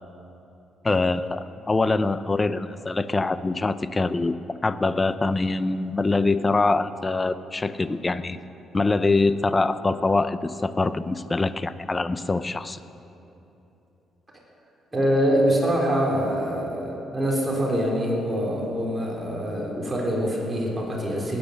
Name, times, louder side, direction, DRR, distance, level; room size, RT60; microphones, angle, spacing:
voice 1, 0.8-4.3 4.6-8.4 8.7-12.8, left 3 dB, 25° left, 13 dB, 0.6 m, -24 dB
voice 2, 14.9-21.4, equal, 20° right, -3 dB, 3.7 m, -24 dB
19.5 x 9.5 x 6.5 m, 3.0 s
cardioid pair, 90°, 0 cm